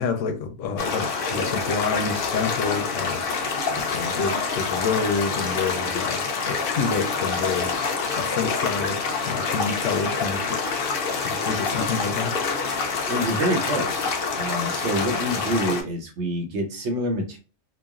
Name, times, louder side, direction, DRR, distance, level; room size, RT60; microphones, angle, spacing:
voice 1, 0.0-3.2 3.8-7.9 8.1-10.9 11.2-12.3, left 5 dB, 85° left, 0.9 m, -28 dB
sound 1, 0.8-15.8, left 4 dB, 55° left, 0.7 m, -27 dB
sound 2, 3.2-8.8, left 3 dB, 50° right, 1.0 m, -44 dB
voice 2, 11.1-11.5 13.1-17.4, right 1 dB, 70° right, 1.0 m, -27 dB
3.0 x 2.4 x 2.3 m
omnidirectional pair, 1.3 m